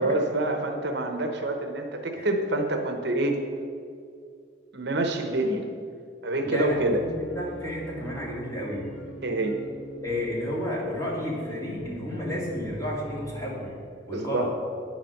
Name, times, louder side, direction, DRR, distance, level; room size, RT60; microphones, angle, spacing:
voice 1, 0.0-3.4 4.7-5.6 6.2-7.0 9.2-9.6 14.1-14.5, right 2 dB, 55° right, 5 dB, 0.9 m, -26 dB
voice 2, 6.5-8.9 10.0-13.8 14.1-14.5, left 1 dB, 15° left, -5 dB, 2.5 m, -31 dB
sound 1, 6.6-13.5, right 1 dB, 80° left, 2.6 m, -43 dB
9.5 x 7.4 x 6.5 m, 2.4 s
head